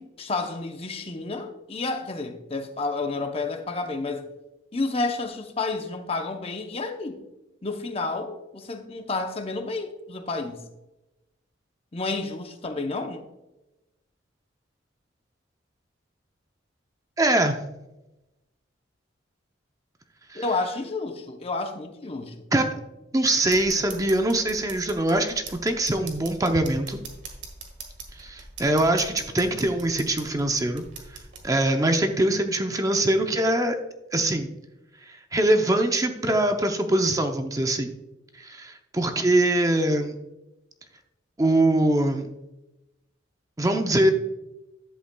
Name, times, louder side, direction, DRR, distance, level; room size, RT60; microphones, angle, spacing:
voice 1, 0.0-4.3 4.7-7.3 7.6-10.6 11.9-13.2 20.3-22.3, left 3 dB, 30° left, 0.7 m, -30 dB
voice 2, 17.2-17.6 20.3-20.4 22.5-22.7 23.1-27.0 28.2-30.8 31.4-33.8 34.1-34.5 35.1-37.9 38.4-40.1 41.4-42.3 43.6-44.1, right 1 dB, 15° right, 0.6 m, -23 dB
sound 1, 23.4-31.4, right 4 dB, 60° right, 1.7 m, -42 dB
11.5 x 8.0 x 2.2 m
head